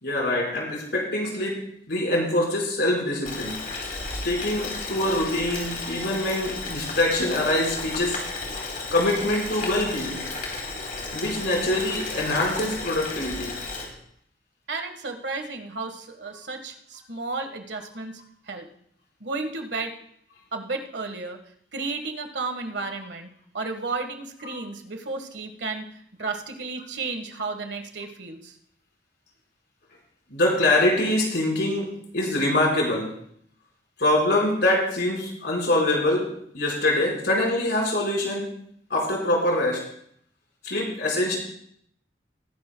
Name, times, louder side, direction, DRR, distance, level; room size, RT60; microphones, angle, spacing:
voice 1, 0.0-3.6 4.2-8.2 8.9-10.2 11.1-13.6 30.3-33.1 34.0-38.5 38.9-39.8 40.6-41.4, left 1 dB, 70° left, -2 dB, 4.8 m, -24 dB
Boiling, 3.2-13.9, left 3 dB, 50° left, 3.2 m, -33 dB
voice 2, 14.7-18.2 18.5-18.7 19.2-19.9 20.5-21.4 21.7-25.9 26.2-28.5, right 3 dB, 85° right, 5 dB, 1.5 m, -33 dB
20.5 x 11.0 x 2.3 m, 0.67 s
head